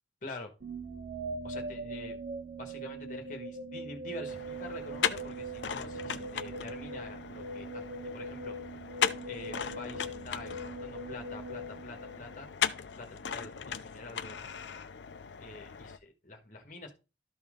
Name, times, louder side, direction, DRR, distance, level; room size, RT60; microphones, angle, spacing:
voice 1, 0.2-0.5 1.4-2.2 2.6-7.8 8.1-8.5 9.3-12.5 13.0-14.5 15.4-16.9, left 2 dB, 45° left, 4 dB, 1.5 m, -46 dB
sound 1, 0.6-12.7, right 2 dB, 55° right, 0.8 m, -41 dB
sound 2, 4.3-16.0, left 7 dB, 75° left, 0.5 m, -38 dB
12.5 x 4.3 x 3.7 m, 0.30 s
head